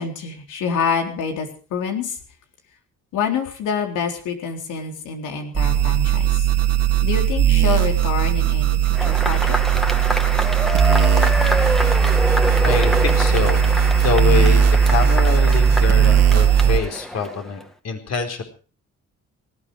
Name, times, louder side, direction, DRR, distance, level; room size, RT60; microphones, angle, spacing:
voice 1, 0.0-2.2 3.1-6.4 7.0-9.5, left 6 dB, 85° left, 4 dB, 3.9 m, -26 dB
sound 1, 5.5-16.8, right 8 dB, 55° right, 2.3 m, -17 dB
Cheering / Applause / Crowd, 8.9-17.6, equal, ahead, 2.1 m, -26 dB
voice 2, 12.6-18.4, left 5 dB, 55° left, 5 dB, 4.6 m, -25 dB
19.0 x 14.5 x 4.9 m, 0.38 s
cardioid pair, 90°, 30 cm